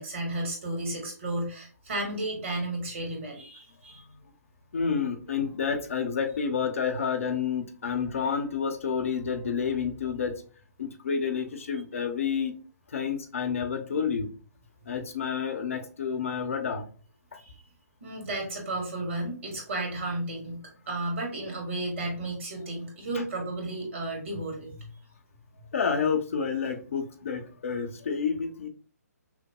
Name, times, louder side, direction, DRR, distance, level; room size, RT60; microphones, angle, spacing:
voice 1, 0.0-4.0 17.4-17.6 18.0-24.9, right 2 dB, 50° right, 1 dB, 1.7 m, -33 dB
voice 2, 4.7-10.4 10.8-12.5 12.9-14.3 14.9-16.9 17.3-17.4 23.1-23.2 25.7-28.7, left 6 dB, 55° left, 5 dB, 0.8 m, -29 dB
5.8 x 2.1 x 2.3 m, 0.39 s
figure-of-eight pair, 130°, 9 cm